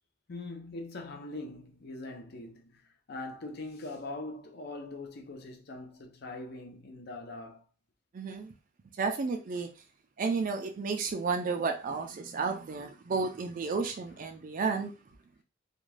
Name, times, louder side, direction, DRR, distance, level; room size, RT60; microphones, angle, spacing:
voice 1, 0.3-2.8 3.1-7.6, left 2 dB, 55° left, 0.6 m, -42 dB
voice 2, 8.1-8.5 9.0-9.7 10.2-14.9, right 4 dB, 40° right, 0.3 m, -32 dB
2.5 x 2.2 x 3.1 m
head